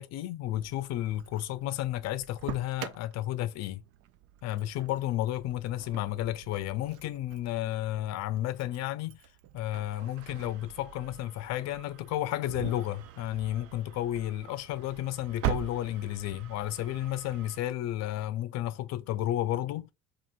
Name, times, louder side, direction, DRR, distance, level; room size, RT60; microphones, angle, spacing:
voice 1, 0.0-3.8 4.4-9.2 9.5-19.9, left 13 dB, 60° left, 0.5 m, -32 dB
Engine starting, 0.6-17.6, right 11 dB, 50° right, 0.4 m, -43 dB
2.7 x 2.5 x 2.4 m
supercardioid pair, 80°, 31 cm